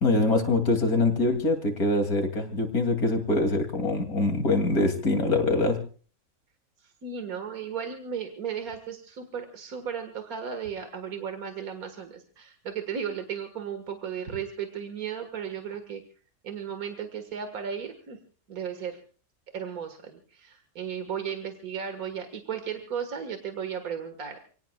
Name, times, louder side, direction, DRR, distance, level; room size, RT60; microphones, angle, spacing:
voice 1, 0.0-5.8, left 2 dB, 90° left, 6 dB, 3.2 m, -24 dB
voice 2, 6.8-16.0 16.4-18.2 18.5-19.0 19.5-24.4, right 7 dB, 80° right, 7 dB, 2.1 m, -35 dB
29.0 x 18.0 x 2.3 m, 0.40 s
omnidirectional pair, 1.5 m